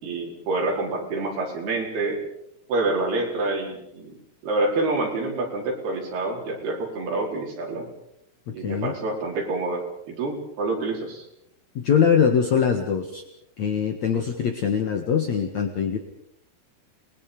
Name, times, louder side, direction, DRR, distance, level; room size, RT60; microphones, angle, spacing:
voice 1, 0.0-2.2 2.7-4.2 4.4-7.9 8.5-11.2, right 2 dB, 80° right, 0 dB, 6.6 m, -27 dB
voice 2, 8.5-8.9 11.8-13.2 13.6-16.0, left 7 dB, 55° left, 4 dB, 2.6 m, -22 dB
30.0 x 21.5 x 5.3 m, 0.74 s
omnidirectional pair, 4.5 m